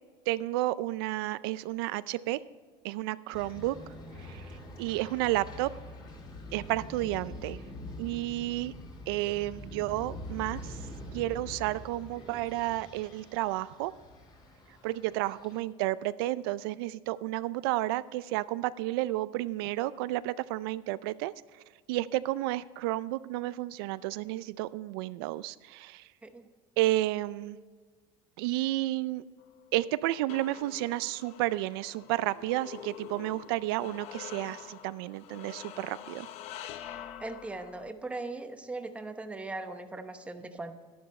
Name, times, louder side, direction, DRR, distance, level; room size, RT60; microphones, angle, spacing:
voice 1, 0.3-2.4 2.8-3.8 4.2-4.4 4.8-5.7 6.5-7.6 8.0-8.7 9.1-10.8 11.1-13.9 14.8-21.3 21.9-26.1 26.8-27.6 28.4-29.2 29.7-36.3, right 17 dB, 90° right, 16 dB, 0.4 m, -31 dB
sound 1, 3.3-15.6, left 1 dB, 35° left, 2.6 m, -45 dB
sound 2, 29.4-37.9, left 10 dB, 60° left, 0.7 m, -46 dB
voice 2, 37.2-40.7, right 2 dB, 10° right, 7 dB, 0.9 m, -39 dB
11.5 x 11.0 x 4.2 m, 1.5 s
cardioid pair, 135°, 12 cm